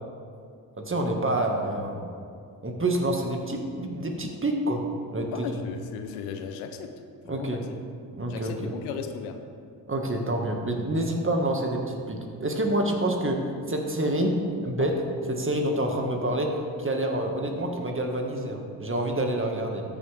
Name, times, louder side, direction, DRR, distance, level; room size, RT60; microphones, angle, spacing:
voice 1, 0.8-2.0 2.6-4.8 5.1-5.5 7.3-7.6 8.1-8.7 9.9-13.4 13.7-14.3 14.6-14.9 15.3-16.5 16.8-19.8, right 1 dB, 25° right, 2 dB, 1.7 m, -27 dB
voice 2, 5.3-6.9 7.3-7.6 8.3-9.4 14.8-14.9, left 6 dB, 85° left, 7 dB, 0.8 m, -36 dB
14.0 x 6.3 x 3.5 m, 2.3 s
hypercardioid pair, 45°, 49 cm